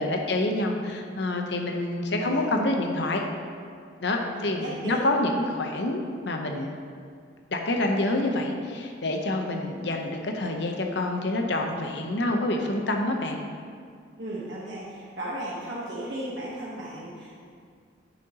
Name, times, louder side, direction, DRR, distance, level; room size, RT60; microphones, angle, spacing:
voice 1, 0.0-3.2 4.0-6.7 7.5-13.4, left 1 dB, 60° left, 2 dB, 0.8 m, -27 dB
voice 2, 4.3-5.0 14.1-17.4, right 1 dB, 60° right, -7 dB, 1.1 m, -35 dB
9.4 x 6.5 x 2.9 m, 2.2 s
head